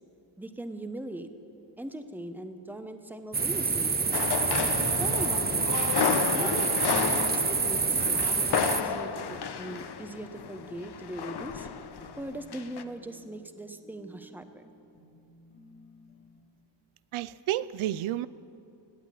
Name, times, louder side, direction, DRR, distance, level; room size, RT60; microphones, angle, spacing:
voice 1, 0.4-1.3 1.8-4.0 4.7-5.7 6.3-11.7 12.2-14.7, right 1 dB, 5° right, 8 dB, 1.0 m, -40 dB
sound 1, 3.3-8.8, right 5 dB, 20° right, 0.6 m, -27 dB
sound 2, 4.1-12.3 12.5-12.8, left 7 dB, 55° left, 1.0 m, -31 dB
sound 3, 12.0-16.3, equal, 90° left, 4.7 m, -56 dB
voice 2, 17.1-18.3, right 13 dB, 85° right, 17 dB, 0.6 m, -30 dB
19.0 x 8.7 x 8.4 m, 2.7 s
cardioid pair, 85°, 48 cm